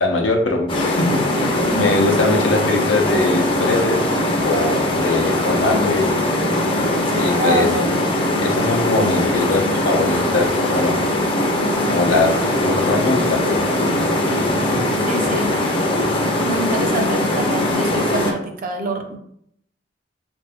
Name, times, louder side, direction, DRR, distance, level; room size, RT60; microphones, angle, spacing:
voice 1, 0.0-4.1 4.4-6.2 7.2-7.7 8.4-11.0 11.9-13.9, left 2 dB, 90° left, 2 dB, 0.7 m, -21 dB
sound 1, 0.7-18.3, left 1 dB, 30° left, 0.5 m, -20 dB
voice 2, 1.6-2.0 7.1-7.9 15.1-15.5 16.4-19.2, right 1 dB, 50° right, 5 dB, 0.5 m, -26 dB
3.7 x 2.6 x 3.4 m, 0.71 s
head